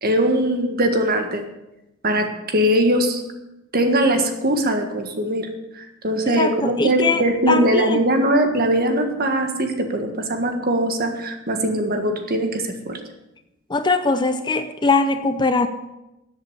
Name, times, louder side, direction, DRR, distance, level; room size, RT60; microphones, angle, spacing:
voice 1, 0.0-1.4 2.0-3.2 3.7-5.5 5.7-13.0, right 1 dB, 45° right, 5 dB, 1.6 m, -21 dB
voice 2, 6.3-8.0 13.7-15.7, left 3 dB, 20° left, 9 dB, 0.6 m, -21 dB
13.5 x 8.1 x 6.8 m, 0.94 s
head